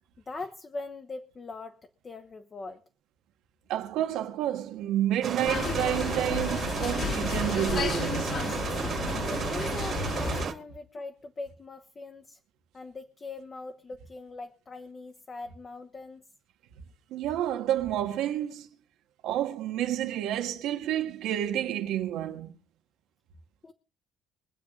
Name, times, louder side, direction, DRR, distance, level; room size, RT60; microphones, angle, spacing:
voice 1, 0.3-2.8 9.2-12.4 12.7-16.2 23.6-23.7, left 3 dB, 25° left, 1.0 m, -41 dB
voice 2, 3.7-8.4 17.1-18.7 19.2-22.5, right 12 dB, 80° right, 1.7 m, -30 dB
sound 1, 5.2-10.5, right 7 dB, 40° right, 1.9 m, -33 dB
sound 2, 5.5-10.5, left 5 dB, 45° left, 1.6 m, -32 dB
23.5 x 8.4 x 3.9 m
cardioid pair, 160°, 0 cm